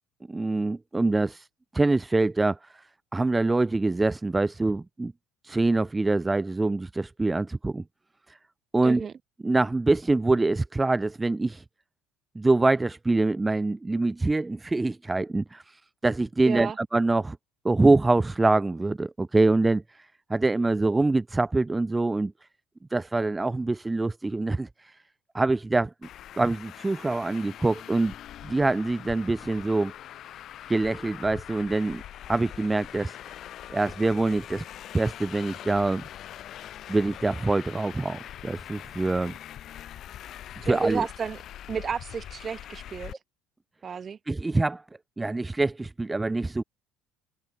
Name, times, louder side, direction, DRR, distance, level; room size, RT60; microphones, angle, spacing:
voice 1, 0.3-1.5 1.7-2.8 3.1-5.1 5.4-7.8 8.3-8.4 8.7-9.1 9.4-11.6 12.4-17.4 17.6-22.3 22.9-25.0 25.3-25.9 26.4-28.1 28.4-29.9 30.7-32.0 32.3-33.4 33.7-34.6 34.9-36.0 36.9-39.4 40.6-41.1 44.3-44.8 45.2-46.6, right 2 dB, 10° right, 0.3 m, -25 dB
voice 2, 8.8-9.1 16.4-16.8 40.6-41.4 41.7-43.1 43.8-44.2, right 6 dB, 25° right, 1.6 m, -32 dB
Traffic noise roadway noise, 26.0-43.1, left 11 dB, 45° left, 1.6 m, -43 dB
cardioid pair, 150°, 0 cm